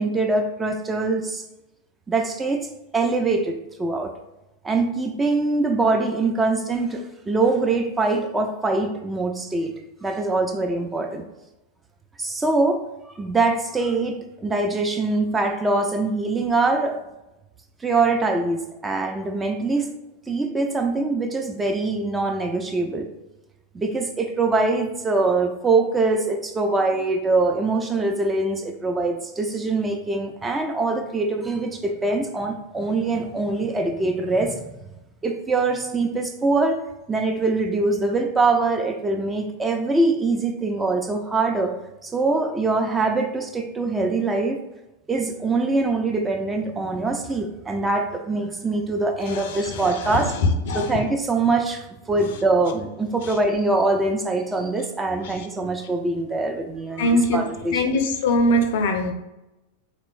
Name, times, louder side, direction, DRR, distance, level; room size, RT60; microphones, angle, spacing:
voice 1, 0.0-1.4 2.1-2.7 2.9-4.1 4.6-9.7 10.0-11.2 12.2-17.0 17.8-19.9 20.3-23.1 23.7-34.8 35.2-36.8 37.1-41.7 42.0-44.6 45.1-50.3 50.7-57.8, right 3 dB, 15° right, 4 dB, 0.4 m, -23 dB
voice 2, 49.2-50.9 57.0-57.4 57.7-59.1, left 1 dB, 55° left, 5 dB, 0.4 m, -22 dB
3.0 x 3.0 x 2.5 m, 0.96 s
figure-of-eight pair, 90°, 0 cm